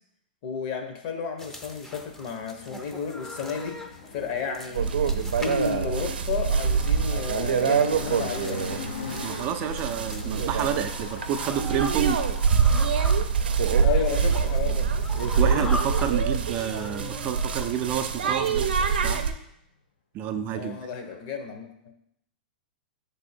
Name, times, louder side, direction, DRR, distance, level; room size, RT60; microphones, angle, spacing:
voice 1, 0.4-3.8 4.1-8.7 13.8-14.9 20.5-21.7, left 6 dB, 50° left, 5 dB, 1.1 m, -32 dB
sound 1, 1.4-19.0, left 1 dB, 10° left, 0.6 m, -41 dB
sound 2, 1.8-19.2, left 5 dB, 85° left, 0.9 m, -44 dB
sound 3, 4.7-19.3, right 6 dB, 85° right, 0.5 m, -25 dB
voice 2, 9.2-12.2 15.4-18.7 19.0-19.2 20.1-20.8, right 9 dB, 35° right, 7 dB, 0.5 m, -29 dB
6.0 x 3.6 x 4.4 m, 0.75 s
hypercardioid pair, 130°, 5 cm